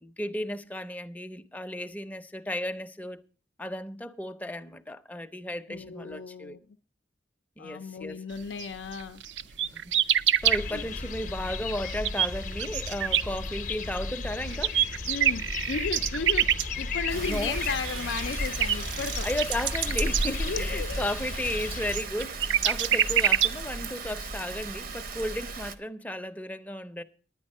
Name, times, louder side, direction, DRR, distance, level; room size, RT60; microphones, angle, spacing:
voice 1, 0.0-3.2 3.6-6.6 7.6-8.2 9.7-9.9 10.4-14.8 17.3-17.6 19.2-27.0, left 1 dB, 10° left, 0.6 m, -34 dB
voice 2, 5.7-6.6 7.6-9.2 10.7-10.8 15.1-16.5 16.8-19.3 20.5-21.0 22.9-23.0, left 5 dB, 80° left, 0.5 m, -35 dB
sound 1, 8.6-8.7 8.9-10.6 11.2-11.3 11.7-14.0 14.3-24.0, right 10 dB, 75° right, 0.5 m, -26 dB
sound 2, 10.4-23.2, left 4 dB, 45° left, 0.7 m, -36 dB
Rain, 17.1-25.8, right 2 dB, 55° right, 0.8 m, -35 dB
10.0 x 9.8 x 5.3 m
head